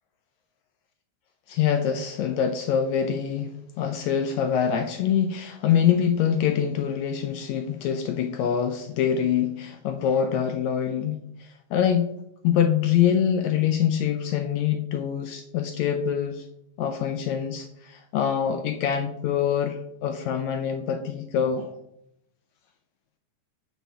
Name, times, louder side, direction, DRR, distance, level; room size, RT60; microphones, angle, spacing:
voice 1, 1.5-12.1 12.4-16.5 16.8-21.8, left 8 dB, 75° left, 6 dB, 1.8 m, -25 dB
6.2 x 4.7 x 6.7 m, 0.76 s
omnidirectional pair, 3.5 m